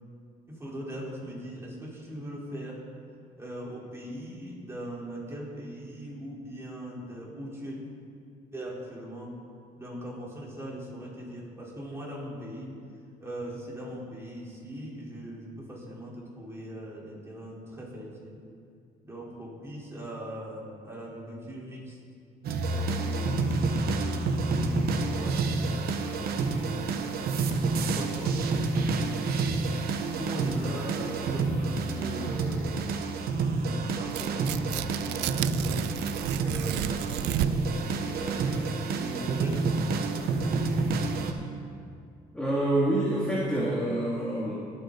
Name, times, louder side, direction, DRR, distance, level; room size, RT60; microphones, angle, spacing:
voice 1, 0.5-2.8 3.4-7.8 8.5-9.3 9.7-12.7 13.2-18.4 19.0-22.0 22.6-23.7 24.0-27.1 27.7-29.6 30.1-33.0 33.6-35.9 36.4-41.2, equal, 15° right, -5 dB, 4.1 m, -40 dB
sound 1, 22.4-41.3, right 3 dB, 65° right, 1.2 m, -29 dB
Tearing, 34.0-37.8, right 14 dB, 85° right, 0.4 m, -33 dB
voice 2, 42.3-44.6, right 1 dB, 5° left, -8 dB, 2.4 m, -27 dB
22.5 x 8.7 x 4.1 m, 2.3 s
cardioid pair, 110°, 17 cm